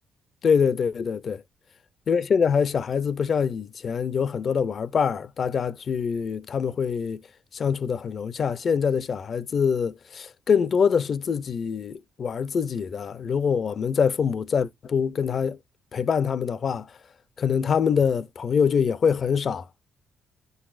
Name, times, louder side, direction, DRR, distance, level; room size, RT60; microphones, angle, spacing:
voice 1, 0.4-1.4 2.1-7.2 7.5-15.6 15.9-16.9 17.4-19.7, left 6 dB, 50° left, 0.5 m, -24 dB
9.5 x 4.0 x 2.5 m
cardioid pair, 90°, 0 cm